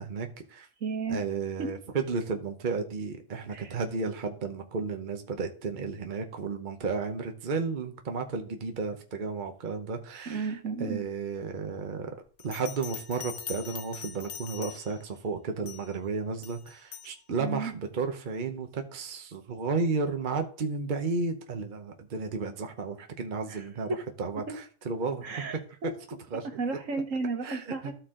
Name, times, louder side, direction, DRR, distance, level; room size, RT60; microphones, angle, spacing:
voice 1, 0.0-0.7 1.1-12.1 12.4-25.4 26.3-26.5 27.4-27.9, right 4 dB, 40° right, 5 dB, 0.9 m, -33 dB
voice 2, 0.8-1.2 1.6-1.7 3.5-3.8 10.3-11.0 17.4-17.7 23.5-23.6 25.2-25.9 26.6-27.9, right 4 dB, 65° right, 4 dB, 1.7 m, -33 dB
Bell, 12.4-15.1 15.7-16.0 16.4-17.2, left 8 dB, 50° left, 0.6 m, -42 dB
13.0 x 4.5 x 3.7 m, 0.42 s
omnidirectional pair, 1.5 m